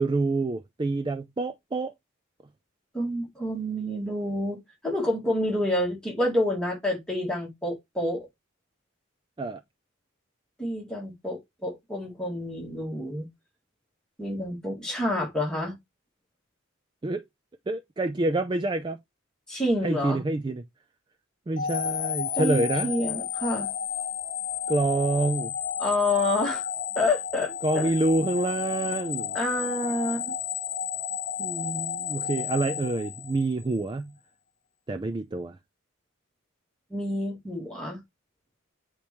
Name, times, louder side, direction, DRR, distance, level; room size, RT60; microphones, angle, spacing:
voice 1, 0.0-1.9 9.4-9.6 17.0-17.2 17.7-19.0 19.8-20.6 21.5-22.9 24.7-25.5 27.6-29.4 31.4-34.1 34.9-35.6, right 2 dB, 20° right, 0.3 m, -27 dB
voice 2, 2.9-8.3 10.6-13.3 14.2-15.8 19.5-20.2 22.4-23.7 25.8-26.7 27.0-27.9 29.3-30.3 36.9-38.0, left 1 dB, 5° left, 2.1 m, -28 dB
sound 1, 21.6-33.7, left 8 dB, 60° left, 0.6 m, -32 dB
8.7 x 4.4 x 3.0 m
head